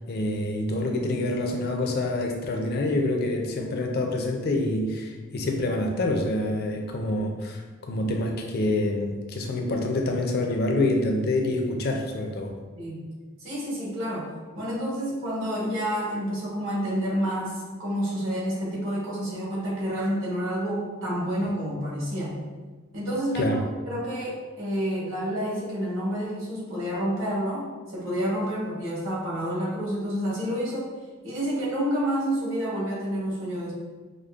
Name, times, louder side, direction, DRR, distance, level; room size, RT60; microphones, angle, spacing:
voice 1, 0.1-12.5 23.4-23.6, left 2 dB, 45° left, 2 dB, 0.4 m, -26 dB
voice 2, 13.4-22.3 22.9-23.5 23.9-30.9 31.2-33.7, equal, 65° right, -6 dB, 1.1 m, -29 dB
5.0 x 2.0 x 2.3 m, 1.4 s
head